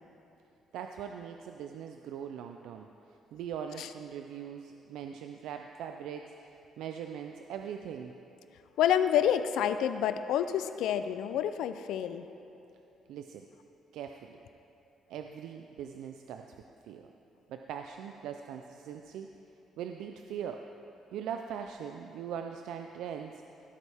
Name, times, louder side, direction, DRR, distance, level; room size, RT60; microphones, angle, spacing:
voice 1, 0.7-2.9 3.3-8.1 13.1-13.4 13.9-14.4 15.1-16.5 16.8-17.1 17.5-19.3 19.8-20.6 21.1-23.4, right 8 dB, 90° right, 5 dB, 0.4 m, -41 dB
voice 2, 8.8-12.3, left 9 dB, 80° left, 11 dB, 0.4 m, -28 dB
16.0 x 8.4 x 3.5 m, 2.8 s
cardioid pair, 165°, 0 cm